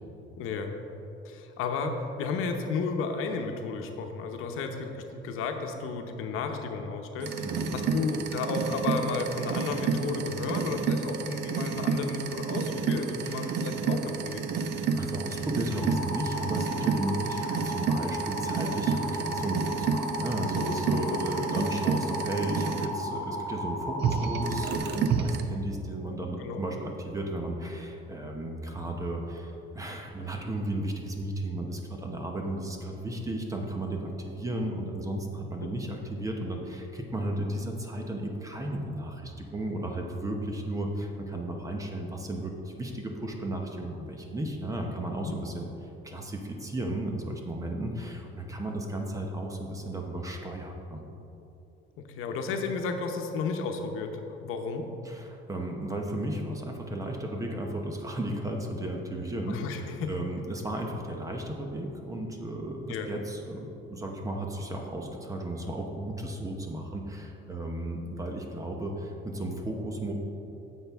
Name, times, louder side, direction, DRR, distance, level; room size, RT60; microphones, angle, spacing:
voice 1, 0.4-0.7 1.2-7.5 7.7-14.7 21.1-21.2 26.4-26.6 35.6-35.7 45.2-45.4 52.0-54.9 59.5-60.1 62.9-63.1, left 4 dB, 80° left, 4 dB, 0.9 m, -33 dB
sound 1, 7.2-22.9 24.0-25.4, right 5 dB, 55° right, 0.6 m, -30 dB
voice 2, 7.4-7.8 13.2-13.6 15.0-45.7 46.0-51.0 55.0-70.1, right 1 dB, 15° right, 2 dB, 0.8 m, -34 dB
sound 2, 15.7-24.8, left 1 dB, 25° left, 1.7 m, -35 dB
10.0 x 7.4 x 3.5 m, 2.9 s
cardioid pair, 160°, 21 cm